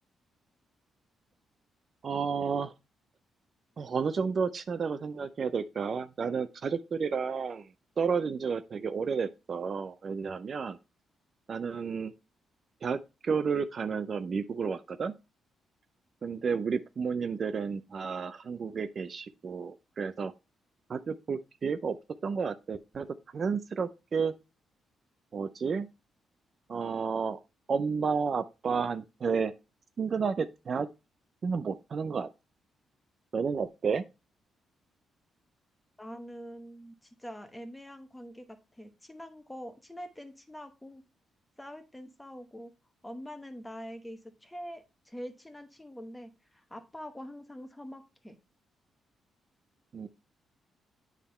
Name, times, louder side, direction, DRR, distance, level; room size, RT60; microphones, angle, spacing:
voice 1, 2.0-2.7 3.8-7.7 8.0-10.8 11.5-12.1 12.8-15.1 16.2-20.3 20.9-22.0 22.2-23.1 23.3-24.3 25.3-25.9 26.7-27.4 27.7-29.5 30.0-30.9 31.4-32.3 33.3-34.0 49.9-50.1, right 5 dB, 40° right, 0.4 m, -31 dB
voice 2, 36.0-41.0 41.6-42.7 43.0-48.4, equal, 10° left, 1.0 m, -44 dB
9.0 x 3.6 x 4.2 m
cardioid pair, 125°, 0 cm